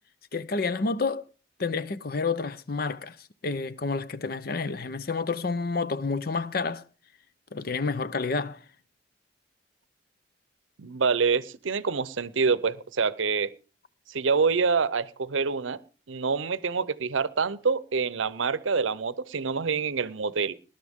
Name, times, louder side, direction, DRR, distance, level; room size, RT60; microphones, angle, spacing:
voice 1, 0.3-1.2 1.6-3.2 3.4-6.8 7.5-8.6, left 4 dB, 50° left, 0.6 m, -29 dB
voice 2, 10.8-13.5 14.1-15.8 16.1-20.5, right 5 dB, 80° right, 0.7 m, -26 dB
19.5 x 11.5 x 3.6 m
head